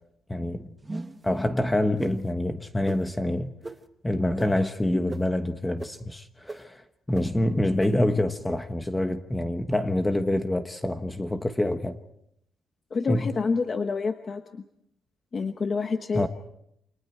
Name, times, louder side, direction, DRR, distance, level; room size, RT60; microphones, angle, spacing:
voice 1, 0.3-0.7 1.2-3.5 4.0-12.0 13.1-13.3 16.1-16.3, left 1 dB, 10° left, 1.2 m, -26 dB
sound 1, 0.8-1.3 2.0-2.2 2.8-3.0 3.6-3.8 4.4-4.5 5.1-5.2 5.8-5.9 6.5-6.6 7.1-7.2 7.8-7.9, right 2 dB, 15° right, 1.2 m, -35 dB
voice 2, 12.9-14.6 15.3-16.3, left 4 dB, 30° left, 1.1 m, -28 dB
29.0 x 26.5 x 4.5 m
cardioid pair, 160°, 0 cm